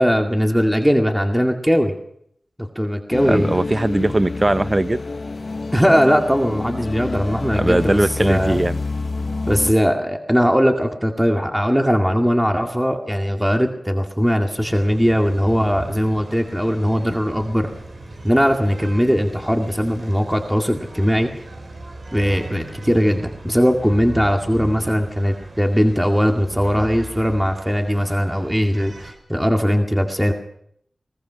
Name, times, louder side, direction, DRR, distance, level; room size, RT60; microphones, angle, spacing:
voice 1, 0.0-1.9 2.8-3.6 5.7-8.6 9.5-17.7 18.2-21.3 22.1-30.3, equal, 5° right, 3 dB, 2.2 m, -19 dB
sound 1, 3.1-9.7, left 3 dB, 60° left, 0.9 m, -28 dB
voice 2, 3.3-5.0 7.6-8.8, right 1 dB, 30° right, 15 dB, 0.7 m, -19 dB
sound 2, 14.6-29.1, right 2 dB, 65° right, 4.3 m, -37 dB
21.0 x 19.5 x 6.3 m, 0.70 s
cardioid pair, 50°, 0 cm